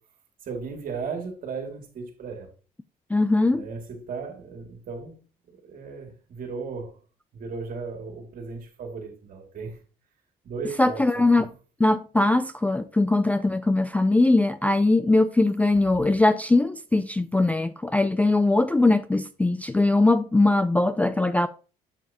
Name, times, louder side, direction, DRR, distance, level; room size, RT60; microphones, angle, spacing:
voice 1, 0.4-2.5 3.5-5.2 5.5-7.0 7.3-9.8 10.4-11.5, right 4 dB, 55° right, 2.3 m, -36 dB
voice 2, 3.1-3.6 10.8-11.5 11.8-21.5, left 2 dB, 10° left, 0.3 m, -21 dB
7.7 x 7.4 x 2.8 m
cardioid pair, 110°, 17 cm